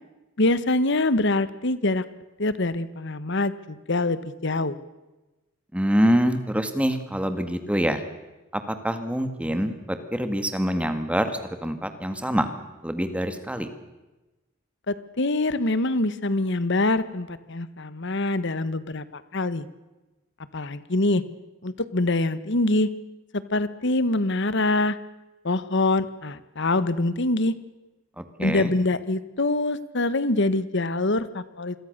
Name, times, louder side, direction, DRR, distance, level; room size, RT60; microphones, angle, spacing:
voice 1, 0.4-2.0 2.4-4.8 14.9-19.7 20.5-21.2 21.6-22.9 23.3-25.0 25.4-27.5 28.4-31.7, left 2 dB, 60° left, 15 dB, 1.3 m, -24 dB
voice 2, 5.7-8.0 8.5-12.5 12.8-13.7 28.2-28.7, equal, 5° right, 9 dB, 1.9 m, -25 dB
27.5 x 22.0 x 6.7 m, 1.1 s
head